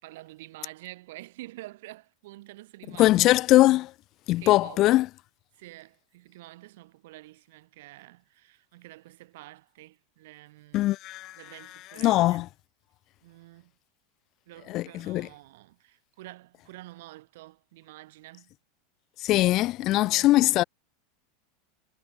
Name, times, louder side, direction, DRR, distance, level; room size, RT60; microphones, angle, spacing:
voice 1, 0.0-3.4 4.4-4.9 5.6-10.9 11.3-12.5 13.2-13.7 14.5-18.5 20.0-20.4, right 18 dB, 75° right, 4.0 m, -48 dB
voice 2, 3.0-3.9 4.3-5.1 10.7-11.4 12.0-12.4 14.7-15.3 19.2-20.6, left 17 dB, 45° left, 0.4 m, -21 dB
supercardioid pair, 125°, 0 cm